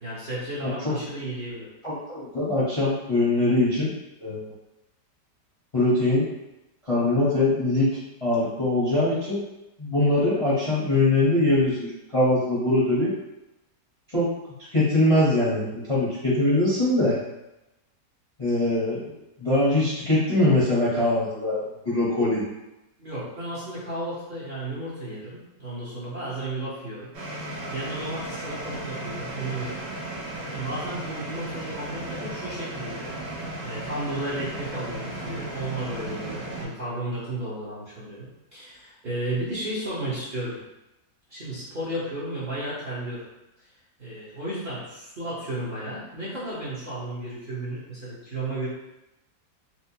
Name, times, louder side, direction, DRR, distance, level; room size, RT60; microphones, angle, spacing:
voice 1, 0.0-1.7 23.0-27.1 27.4-29.8 30.5-40.6 41.3-43.2 44.0-48.7, right 1 dB, 40° right, -10 dB, 0.9 m, -33 dB
voice 2, 0.6-0.9 1.8-3.9 4.2-4.4 5.7-6.3 6.8-7.9 8.2-9.4 9.8-13.1 14.1-14.3 14.7-17.2 18.4-22.4, left 2 dB, 25° left, -9 dB, 0.7 m, -22 dB
sound 1, 27.1-36.7, right 2 dB, 90° right, 1.6 m, -35 dB
4.4 x 2.2 x 2.7 m, 0.93 s
omnidirectional pair, 1.9 m